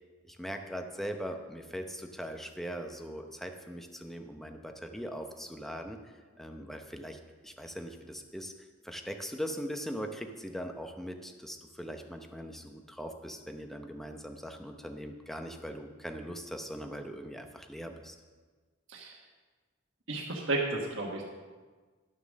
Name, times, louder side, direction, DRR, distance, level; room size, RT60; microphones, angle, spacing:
voice 1, 0.2-6.0 6.4-8.5 8.8-18.2, equal, ahead, 5 dB, 0.7 m, -40 dB
voice 2, 20.1-21.2, right 2 dB, 70° right, -1 dB, 1.4 m, -32 dB
11.5 x 6.9 x 6.4 m, 1.4 s
head